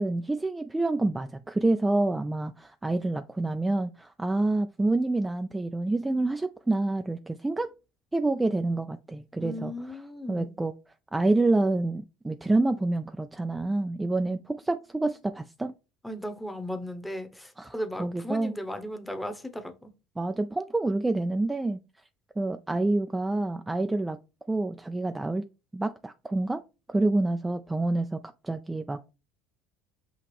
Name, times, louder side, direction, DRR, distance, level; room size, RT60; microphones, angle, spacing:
voice 1, 0.0-7.7 8.1-9.7 10.3-10.7 11.1-15.7 17.6-17.7 18.0-18.5 20.2-21.8 22.4-24.2 24.5-25.4 25.7-26.6 26.9-29.1, right 2 dB, 15° right, 0.4 m, -27 dB
voice 2, 9.4-10.5 16.0-19.9, equal, 5° left, 0.9 m, -36 dB
5.8 x 2.4 x 3.3 m
hypercardioid pair, 65°, 0 cm